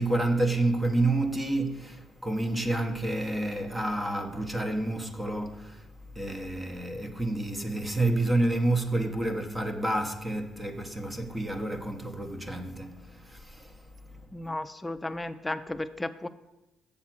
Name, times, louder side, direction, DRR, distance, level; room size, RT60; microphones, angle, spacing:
voice 1, 0.0-5.9 6.1-13.8 14.1-14.2, right 2 dB, 15° right, 0.9 m, -29 dB
voice 2, 14.3-16.3, left 1 dB, 10° left, 0.5 m, -34 dB
7.3 x 7.0 x 5.9 m
cardioid pair, 85°, 0 cm